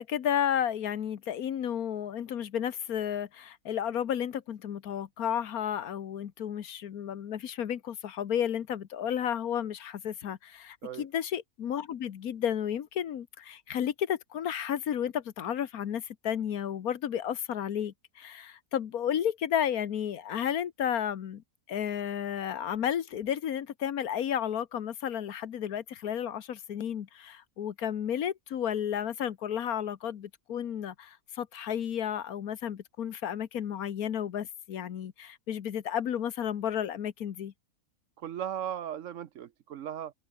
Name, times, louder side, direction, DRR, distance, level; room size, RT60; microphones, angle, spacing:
voice 1, 0.0-37.5, left 9 dB, 85° left, 1.6 m, -32 dB
voice 2, 38.2-40.1, right 9 dB, 65° right, 1.1 m, -37 dB
open air
omnidirectional pair, 1.5 m